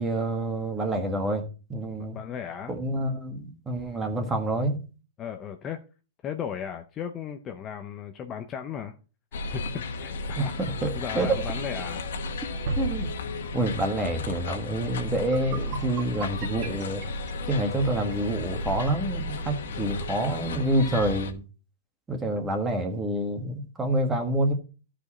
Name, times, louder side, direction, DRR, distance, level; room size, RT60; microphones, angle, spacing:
voice 1, 0.0-1.4 1.7-2.2 2.7-4.8 10.4-10.5 10.8-10.9 11.1-11.4 12.8-13.1 13.5-17.0 17.5-21.4 22.1-24.5, right 1 dB, 10° right, 1.5 m, -27 dB
voice 2, 2.0-2.8 5.2-5.8 6.2-9.0 9.5-10.5 10.9-12.0 19.7-20.0, left 8 dB, 20° left, 0.6 m, -36 dB
sound 1, 9.3-21.3, left 2 dB, 90° left, 1.3 m, -33 dB
sound 2, 12.7-14.6, right 1 dB, 65° right, 1.8 m, -36 dB
sound 3, 15.2-18.2, right 7 dB, 30° right, 1.6 m, -42 dB
13.5 x 5.0 x 4.2 m
supercardioid pair, 165°, 0 cm